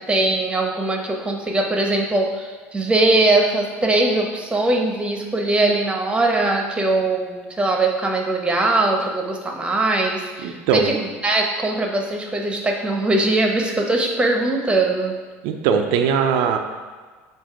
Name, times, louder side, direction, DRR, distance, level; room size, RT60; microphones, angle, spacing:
voice 1, 0.1-15.1, right 2 dB, 15° right, 1 dB, 1.1 m, -21 dB
voice 2, 10.4-10.9 15.4-16.6, right 7 dB, 70° right, 5 dB, 0.6 m, -20 dB
7.6 x 2.7 x 5.1 m, 1.4 s
supercardioid pair, 90°, 7 cm